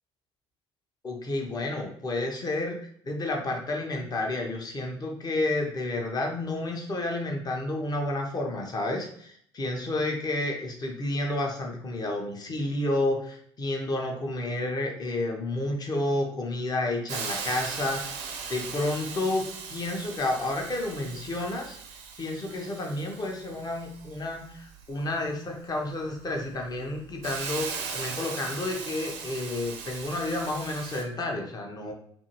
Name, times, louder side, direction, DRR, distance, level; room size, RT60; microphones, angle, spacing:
voice 1, 1.0-2.8 3.0-21.8 22.2-27.7 27.9-31.9, left 2 dB, 25° left, 1 dB, 0.7 m, -30 dB
Hiss, 17.1-31.0, right 5 dB, 65° right, 0.5 m, -39 dB
2.6 x 2.5 x 2.9 m, 0.65 s
figure-of-eight pair, 60°, 15 cm